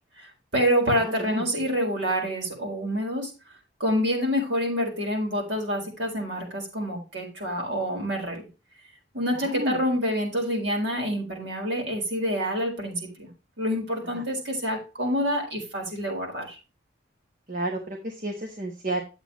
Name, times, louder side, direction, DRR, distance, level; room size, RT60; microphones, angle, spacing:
voice 1, 0.2-3.3 3.8-8.4 9.1-13.3 13.6-16.6, equal, 60° right, 1 dB, 4.1 m, -27 dB
voice 2, 0.9-1.4 9.3-9.8 14.1-14.2 17.5-19.0, right 1 dB, 45° right, 3 dB, 1.2 m, -31 dB
10.0 x 8.0 x 3.0 m, 0.30 s
head